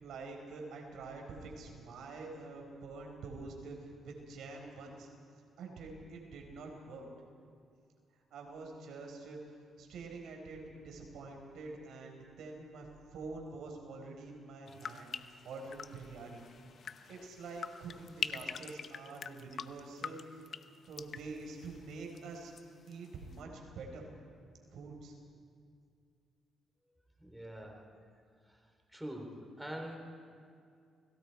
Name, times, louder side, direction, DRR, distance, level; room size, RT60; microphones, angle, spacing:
voice 1, 0.0-5.1 5.6-7.0 8.3-9.4 9.8-15.1 15.4-16.5 17.1-20.4 20.9-22.5 22.9-24.1 24.7-25.1, right 3 dB, 75° right, 1 dB, 4.6 m, -46 dB
sound 1, 14.7-22.6 22.9-23.4, left 7 dB, 55° left, 0.8 m, -45 dB
voice 2, 27.2-27.8 28.5-28.6 28.9-30.0, right 1 dB, 5° right, 2 dB, 3.4 m, -44 dB
29.5 x 21.0 x 4.7 m, 2.3 s
cardioid pair, 90°, 0 cm